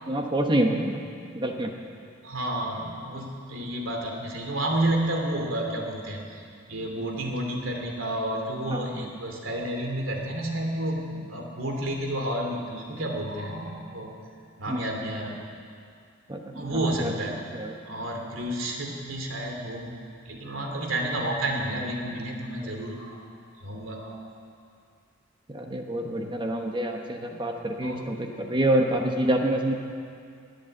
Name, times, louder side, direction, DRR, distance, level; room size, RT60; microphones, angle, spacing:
voice 1, 0.1-1.0 1.3-1.7 8.7-9.1 14.7-14.8 16.3-17.1 17.5-17.7 25.5-29.7, right 1 dB, 25° right, 3 dB, 1.1 m, -27 dB
voice 2, 2.2-6.4 6.7-14.1 14.6-15.4 16.5-17.4 17.8-20.0 20.2-23.2 23.6-24.2 27.8-28.1, right 1 dB, 75° right, 1 dB, 2.6 m, -30 dB
20.0 x 8.4 x 7.8 m, 2.3 s
head